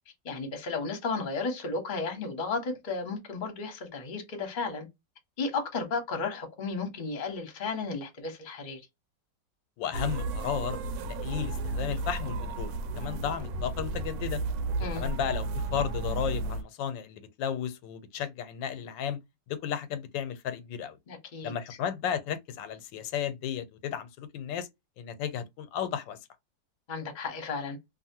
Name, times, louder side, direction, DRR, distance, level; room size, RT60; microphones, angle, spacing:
voice 1, 0.2-4.9 5.4-8.8 14.8-15.1 21.1-21.5 26.9-27.8, left 4 dB, 35° left, 0.8 m, -33 dB
voice 2, 9.8-10.8 11.2-12.7 13.0-14.4 14.9-19.2 19.5-21.0 21.4-24.7 25.0-26.2, left 8 dB, 90° left, 1.3 m, -34 dB
sound 1, 9.9-16.6, right 2 dB, 80° right, 1.2 m, -33 dB
2.7 x 2.5 x 2.7 m
omnidirectional pair, 2.0 m